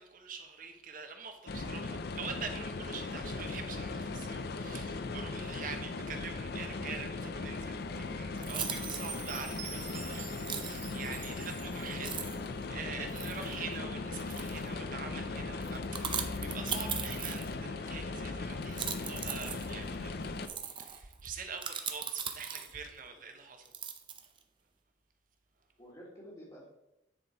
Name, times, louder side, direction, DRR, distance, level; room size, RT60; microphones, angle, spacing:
voice 1, 0.0-7.8 8.1-12.2 12.7-20.3 20.6-23.7, right 5 dB, 45° right, 5 dB, 1.0 m, -45 dB
sound 1, 1.5-20.5, left 3 dB, 55° left, 0.5 m, -38 dB
voice 2, 6.5-8.0 22.6-22.7 23.0-23.1 25.8-26.7, equal, 25° left, -8 dB, 1.8 m, -54 dB
sound 2, 7.8-7.9 8.4-9.3 10.5-10.9 11.6-11.7 12.0-12.5 13.1-13.5 14.2-14.7 15.6-17.7 18.6-22.9 23.6-24.4, right 7 dB, 25° right, 0.6 m, -39 dB
Chime, 8.5-12.5, right 7 dB, 85° right, 1.3 m, -46 dB
9.8 x 4.3 x 4.4 m, 0.90 s
head